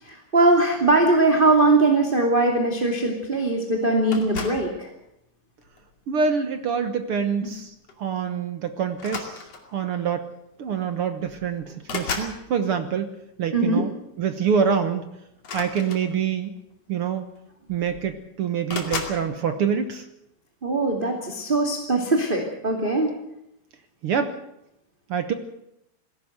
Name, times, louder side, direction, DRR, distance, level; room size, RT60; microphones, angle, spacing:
voice 1, 0.0-4.9 7.4-7.5 13.5-13.8 20.6-23.1, right 2 dB, 15° right, 2 dB, 2.2 m, -21 dB
sound 1, 4.1-4.7 5.6-5.9 7.4-7.6 7.9-8.1 8.9-9.8 10.8-10.9 11.2-12.4 15.4-16.5 17.4-17.5 17.7-18.2 18.7-19.2, left 4 dB, 50° left, 3.4 m, -34 dB
voice 2, 6.1-10.3 10.6-13.1 13.4-13.9 14.2-15.0 15.5-16.5 16.9-17.3 17.7-20.1 24.0-24.4 25.1-25.3, right 6 dB, 60° right, 8 dB, 1.6 m, -26 dB
20.0 x 16.5 x 8.0 m, 0.80 s
omnidirectional pair, 3.8 m